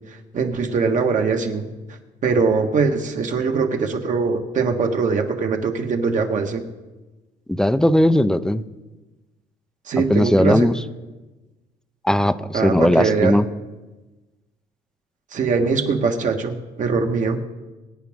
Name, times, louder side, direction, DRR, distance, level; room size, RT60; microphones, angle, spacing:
voice 1, 0.3-1.7 2.2-6.6 9.9-10.7 12.5-13.4 15.3-17.4, right 4 dB, 50° right, 4 dB, 1.7 m, -22 dB
voice 2, 7.5-8.6 10.1-10.8 12.0-13.4, left 1 dB, 5° left, 12 dB, 0.5 m, -18 dB
23.0 x 9.5 x 3.7 m, 1.2 s
cardioid pair, 110°, 17 cm